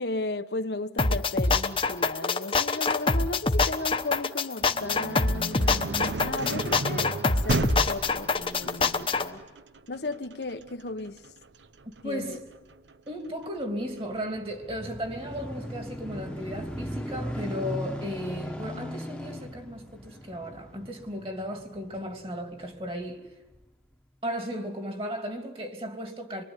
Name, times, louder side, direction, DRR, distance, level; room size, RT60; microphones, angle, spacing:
voice 1, 0.0-9.4 9.9-11.3 12.0-12.4, left 2 dB, 75° left, 1.0 m, -35 dB
sound 1, 1.0-9.3, left 3 dB, 30° left, 1.1 m, -25 dB
sound 2, 4.6-14.4, right 2 dB, 90° right, 0.9 m, -35 dB
voice 2, 12.0-12.5 13.1-23.3 24.2-26.4, equal, 30° right, 2.8 m, -35 dB
sound 3, 14.1-22.9 23.5-23.6, equal, 5° left, 1.3 m, -38 dB
26.0 x 23.0 x 9.8 m
head